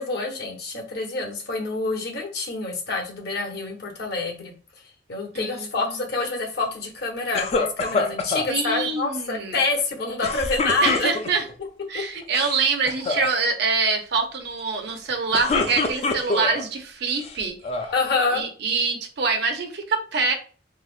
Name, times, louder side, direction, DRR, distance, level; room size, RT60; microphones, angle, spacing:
voice 1, 0.0-4.5 5.1-11.1 17.9-18.4, left 3 dB, 60° left, 1 dB, 0.8 m, -27 dB
voice 2, 5.3-6.0 8.5-9.6 10.8-11.5 11.9-17.9 18.3-20.3, right 4 dB, 65° right, 5 dB, 0.6 m, -25 dB
sound 1, 7.3-8.5 10.2-11.5 12.2-12.6 12.9-13.3 15.1-16.6 17.2-18.0, left 3 dB, 35° left, 0.4 m, -25 dB
3.9 x 2.1 x 2.4 m, 0.39 s
head